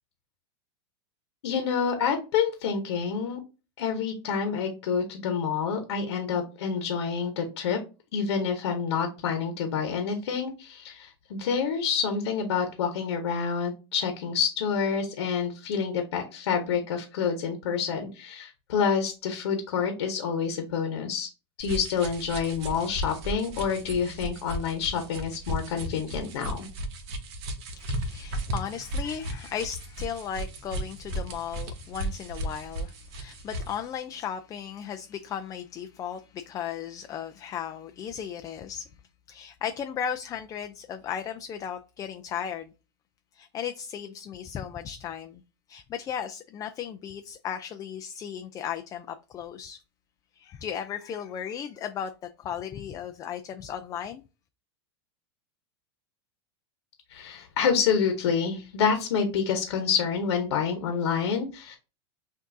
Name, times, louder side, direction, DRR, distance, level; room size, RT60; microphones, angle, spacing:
voice 1, 1.4-3.4 3.8-7.8 8.1-21.3 21.6-26.7 57.1-61.8, left 6 dB, 80° left, 1.0 m, -28 dB
sound 1, 21.6-33.8, right 1 dB, 60° right, 1.1 m, -35 dB
voice 2, 27.7-38.9 39.3-42.7 43.3-45.4 45.7-49.8 50.3-52.1 52.4-54.2, left 8 dB, 25° left, 0.4 m, -36 dB
5.8 x 2.6 x 2.6 m
supercardioid pair, 125°, 14 cm